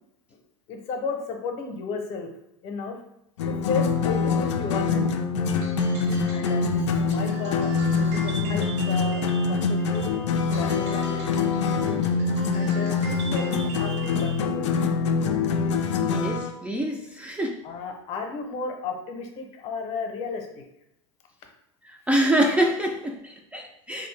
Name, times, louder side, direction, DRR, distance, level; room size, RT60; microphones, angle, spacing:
voice 1, 0.7-2.3 2.6-3.0 3.4-5.2 6.3-10.1 10.5-12.0 12.5-14.8 17.6-20.5, left 4 dB, 45° left, 3 dB, 0.7 m, -34 dB
sound 1, 3.4-16.5, left 5 dB, 75° left, 0.4 m, -25 dB
sound 2, 5.4-14.5, right 4 dB, 75° right, 1.4 m, -42 dB
voice 2, 16.0-17.6 21.9-24.1, right 1 dB, 10° right, 0 dB, 0.4 m, -26 dB
3.0 x 2.6 x 3.2 m, 0.80 s
hypercardioid pair, 100°, 15 cm